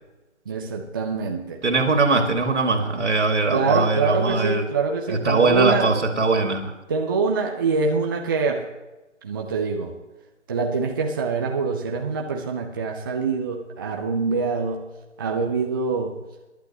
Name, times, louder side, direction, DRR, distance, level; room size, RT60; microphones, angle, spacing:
voice 1, 0.5-1.6 2.2-2.3 3.5-5.9 6.9-8.7 9.2-9.9 10.5-14.8 15.2-16.1, right 4 dB, 20° right, 1 dB, 0.7 m, -24 dB
voice 2, 1.6-4.7 5.1-6.7, right 3 dB, 65° right, 4 dB, 2.5 m, -21 dB
23.0 x 11.5 x 3.0 m, 1.1 s
figure-of-eight pair, 145°, 37 cm